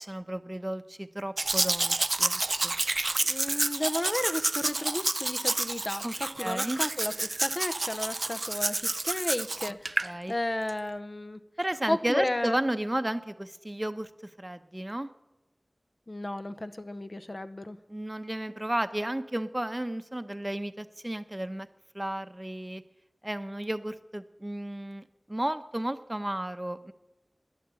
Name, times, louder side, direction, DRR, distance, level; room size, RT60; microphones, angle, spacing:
voice 1, 0.0-2.7 6.0-6.1 6.4-6.8 10.0-10.3 11.6-15.1 17.9-21.7 21.9-22.8 23.2-26.9, right 1 dB, 25° right, 10 dB, 0.8 m, -33 dB
Domestic sounds home sounds, 1.4-10.1 10.7-10.8, right 2 dB, 60° right, 0.4 m, -29 dB
voice 2, 3.2-11.4 11.9-12.6 16.1-17.8, left 1 dB, 45° left, 10 dB, 0.7 m, -33 dB
11.5 x 10.5 x 8.2 m, 1.0 s
wide cardioid pair, 55°, 0 cm